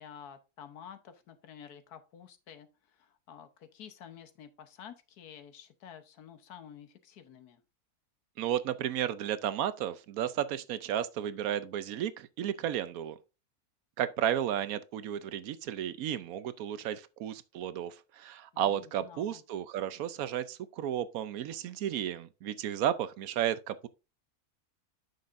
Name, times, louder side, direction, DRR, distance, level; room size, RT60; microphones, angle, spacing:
voice 1, 0.0-7.6 18.5-19.4, left 8 dB, 85° left, 1.5 m, -50 dB
voice 2, 8.4-13.2 14.0-23.9, right 10 dB, 75° right, 1.0 m, -33 dB
9.3 x 6.7 x 2.5 m
omnidirectional pair, 1.6 m